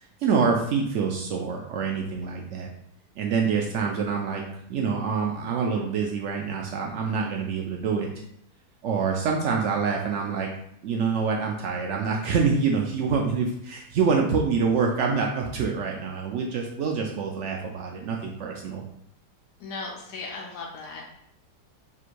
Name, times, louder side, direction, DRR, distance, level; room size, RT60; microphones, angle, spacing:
voice 1, 0.2-2.7 3.2-4.4 4.7-8.1 8.8-10.5 10.8-18.8, right 5 dB, 90° right, 0 dB, 0.6 m, -26 dB
voice 2, 19.6-21.0, left 3 dB, 75° left, -1 dB, 1.2 m, -37 dB
3.5 x 2.5 x 4.5 m, 0.72 s
omnidirectional pair, 1.8 m